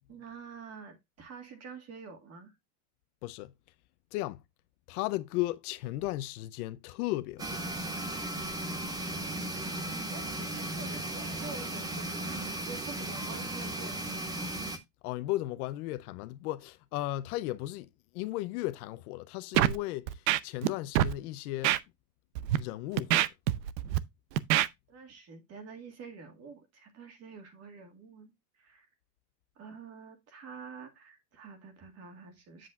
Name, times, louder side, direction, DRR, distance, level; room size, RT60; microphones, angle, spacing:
voice 1, 0.1-2.6 9.9-14.0 24.9-28.9 29.6-32.7, right 5 dB, 30° right, 2.0 m, -47 dB
voice 2, 3.2-3.5 4.1-4.4 4.9-7.6 15.0-17.9 18.1-21.7 22.6-23.3, left 17 dB, 60° left, 0.8 m, -35 dB
sound 1, 7.4-14.8, right 1 dB, 10° right, 0.4 m, -36 dB
Scratching (performance technique), 19.6-19.8 20.1-20.7 21.0-21.1 21.6-21.8 22.4-22.6 23.0-24.0 24.4-24.7, right 13 dB, 90° right, 0.8 m, -25 dB
8.2 x 7.7 x 2.4 m
supercardioid pair, 155°, 49 cm